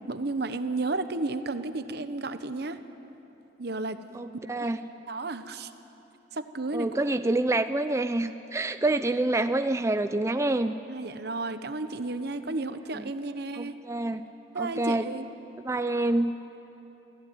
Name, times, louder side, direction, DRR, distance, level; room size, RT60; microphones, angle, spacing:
voice 1, 0.1-2.8 3.6-4.0 4.5-4.7 5.1-5.7 6.3-7.0 10.9-13.8 14.5-15.3, right 3 dB, 60° right, 10 dB, 1.0 m, -32 dB
voice 2, 4.1-4.8 6.7-10.7 12.9-13.1 13.6-14.2 14.6-15.0 15.6-16.3, right 2 dB, 15° right, 9 dB, 0.4 m, -27 dB
23.0 x 16.0 x 9.1 m, 3.0 s
head